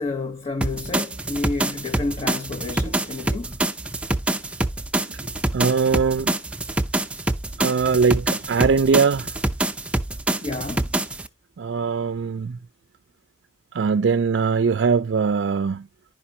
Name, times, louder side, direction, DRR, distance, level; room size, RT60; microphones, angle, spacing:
voice 1, 0.0-3.6 10.4-11.0, left 3 dB, 35° left, 1.0 m, -30 dB
sound 1, 0.6-11.3, right 1 dB, 5° right, 0.5 m, -26 dB
voice 2, 5.5-6.3 7.6-9.3 11.6-12.6 13.7-15.9, right 5 dB, 65° right, 0.4 m, -21 dB
11.0 x 5.1 x 2.7 m
head